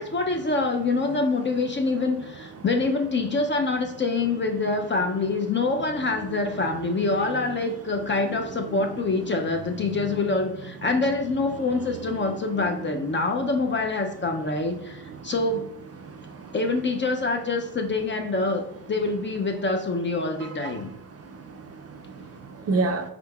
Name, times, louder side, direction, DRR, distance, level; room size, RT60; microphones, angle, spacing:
voice 1, 0.0-15.7 16.5-20.9, left 3 dB, 25° left, 4 dB, 0.4 m, -26 dB
voice 2, 16.0-16.5 20.6-20.7 21.3-23.1, right 3 dB, 35° right, 5 dB, 0.4 m, -30 dB
5.1 x 3.6 x 2.3 m, 0.80 s
cardioid pair, 80°, 44 cm